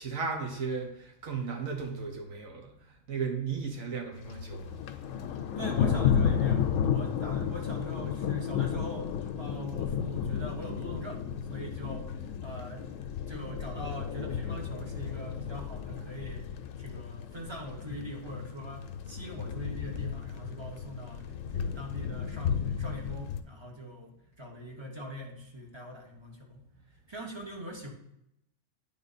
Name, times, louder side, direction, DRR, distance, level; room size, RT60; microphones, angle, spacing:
voice 1, 0.0-4.7, right 5 dB, 80° right, 1 dB, 1.6 m, -35 dB
Thunder, 4.2-23.4, left 8 dB, 75° left, 0.9 m, -33 dB
voice 2, 5.6-11.2 11.5-12.8 13.3-16.4 16.8-26.6 27.1-27.9, equal, 20° right, 0 dB, 1.1 m, -42 dB
9.1 x 3.7 x 4.0 m, 0.80 s
omnidirectional pair, 1.4 m